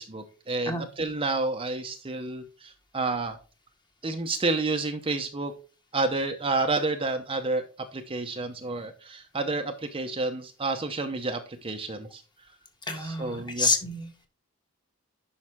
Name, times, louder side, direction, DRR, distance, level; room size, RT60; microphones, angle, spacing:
voice 1, 0.0-3.4 4.0-5.5 5.9-12.2 13.0-13.7, right 3 dB, 25° right, 5 dB, 0.8 m, -30 dB
voice 2, 12.9-14.1, left 3 dB, 20° left, 4 dB, 1.6 m, -28 dB
10.5 x 5.7 x 3.6 m, 0.37 s
head